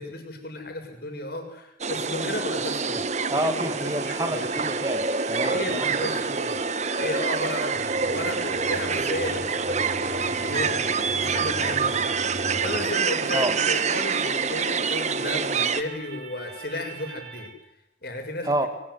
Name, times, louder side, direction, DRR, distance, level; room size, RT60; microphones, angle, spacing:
voice 1, 0.0-4.5 5.5-17.5 18.0-18.5, left 2 dB, 55° left, 5 dB, 6.9 m, -34 dB
sound 1, 1.8-15.8, right 5 dB, 35° right, 1.3 m, -26 dB
voice 2, 3.3-5.9 6.1-6.2 13.3-13.5 18.4-18.7, right 1 dB, 20° right, 9 dB, 2.0 m, -28 dB
sound 2, 4.0-17.5, right 6 dB, 70° right, 5.4 m, -42 dB
sound 3, 7.7-12.9, equal, 55° right, 4.1 m, -41 dB
23.5 x 20.5 x 9.8 m, 0.84 s
head